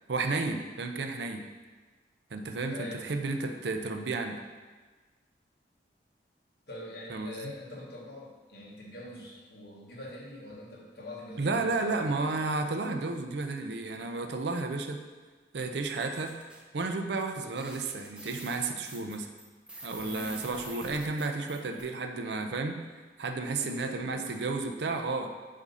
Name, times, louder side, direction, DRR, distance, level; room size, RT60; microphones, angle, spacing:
voice 1, 0.1-1.4 2.3-4.4 7.1-7.5 11.4-15.0 15.5-16.3 16.7-19.3 19.8-25.3, right 3 dB, 75° right, 5 dB, 0.5 m, -32 dB
voice 2, 2.7-3.1 6.7-12.1 20.0-20.4 23.5-24.4, left 1 dB, 60° left, -4 dB, 1.3 m, -44 dB
sound 1, 15.8-16.6 17.2-17.3 17.5-21.8, right 1 dB, 5° right, 0.5 m, -46 dB
7.2 x 2.7 x 5.4 m, 1.4 s
head